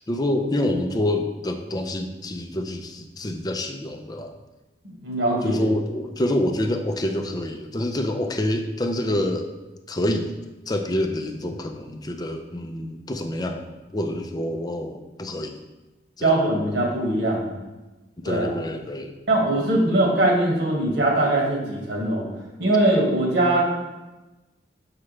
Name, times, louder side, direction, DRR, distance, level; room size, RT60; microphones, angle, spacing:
voice 1, 0.0-4.4 5.4-9.5 9.9-10.3 10.7-15.6 16.2-16.3 18.2-19.1, left 1 dB, 20° left, 5 dB, 0.5 m, -27 dB
voice 2, 4.8-5.6 16.2-17.6 18.3-18.6 19.3-22.3 22.6-23.6, right 1 dB, 70° right, -2 dB, 1.8 m, -21 dB
7.3 x 4.8 x 3.2 m, 1.1 s
head